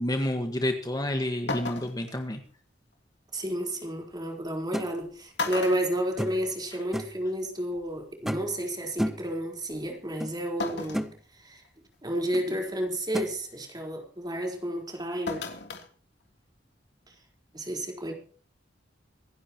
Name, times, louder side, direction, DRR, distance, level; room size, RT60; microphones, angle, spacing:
voice 1, 0.0-2.4, left 1 dB, 20° left, 1.6 m, -29 dB
sound 1, 1.0-1.1 1.5-2.1 3.7-3.8 4.8-5.0 5.4-6.8 7.1-7.2 8.4-8.5 10.6-11.1 11.7-11.8 12.3-12.6 15.3-15.9 16.2-16.3, left 3 dB, 65° left, 3.2 m, -34 dB
voice 2, 3.3-11.1 11.4-11.6 12.0-15.5 17.5-18.1, right 1 dB, 20° right, 4.4 m, -31 dB
sound 2, 4.7-4.9 6.2-6.5 6.9-7.2 8.3-8.6 9.0-9.3 10.2-10.3 10.7-11.1 12.3-12.5 13.1-13.3, equal, ahead, 1.0 m, -32 dB
26.0 x 11.0 x 3.1 m
head